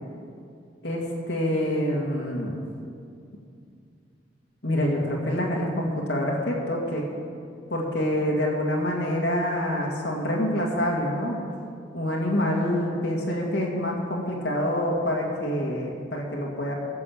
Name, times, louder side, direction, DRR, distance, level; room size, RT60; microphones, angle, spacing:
voice 1, 0.8-2.6 4.6-7.0 7.7-11.4 11.9-16.7, left 1 dB, 75° left, -3 dB, 2.1 m, -26 dB
15.0 x 6.9 x 7.2 m, 2.4 s
head